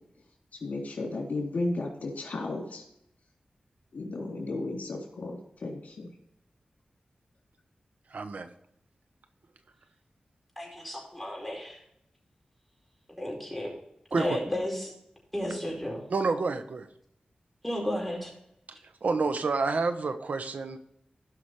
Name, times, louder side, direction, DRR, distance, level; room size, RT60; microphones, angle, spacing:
voice 1, 0.6-2.8 3.9-6.1, left 2 dB, 75° left, 0 dB, 3.4 m, -34 dB
voice 2, 8.1-8.5 14.1-14.4 16.1-16.9 18.7-20.8, right 4 dB, 70° right, 9 dB, 1.0 m, -29 dB
voice 3, 10.6-11.8 13.2-13.7 14.1-14.9 15.3-16.0 17.6-18.3, left 1 dB, ahead, -2 dB, 4.6 m, -33 dB
17.0 x 5.9 x 3.3 m, 0.76 s
wide cardioid pair, 80°, 3 cm